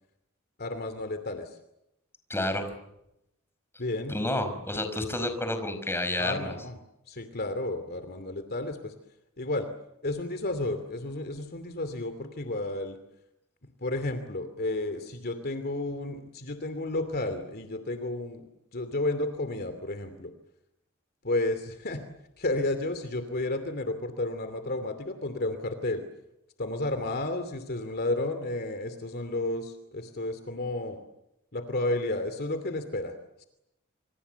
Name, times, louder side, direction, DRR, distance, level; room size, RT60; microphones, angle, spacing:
voice 1, 0.6-1.6 3.8-4.2 6.2-6.8 7.1-8.9 9.4-9.7 10.0-13.0 13.8-20.3 21.2-22.0 22.4-26.0 26.6-31.0 31.5-33.1 33.4-33.5, left 2 dB, 50° left, 9 dB, 2.7 m, -32 dB
voice 2, 2.3-2.7 4.1-6.5, left 1 dB, 10° left, 8 dB, 5.2 m, -30 dB
28.5 x 27.5 x 7.0 m, 0.85 s
head